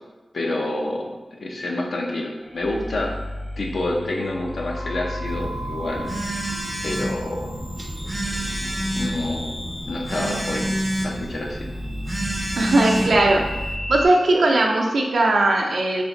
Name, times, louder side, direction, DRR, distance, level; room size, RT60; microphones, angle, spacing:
voice 1, 0.3-1.1 1.4-3.1 3.6-6.1 6.8-7.5 8.9-9.5 9.9-10.7 11.0-11.7, left 2 dB, 70° left, 0 dB, 0.6 m, -28 dB
sound 1, 2.4-14.1, left 1 dB, 35° left, 0.8 m, -34 dB
Telephone, 5.2-13.8, right 1 dB, 20° right, 0.5 m, -29 dB
voice 2, 12.6-13.4 13.9-16.0, right 2 dB, 75° right, 0 dB, 0.5 m, -18 dB
3.3 x 2.5 x 3.8 m, 1.1 s
wide cardioid pair, 100°, 0 cm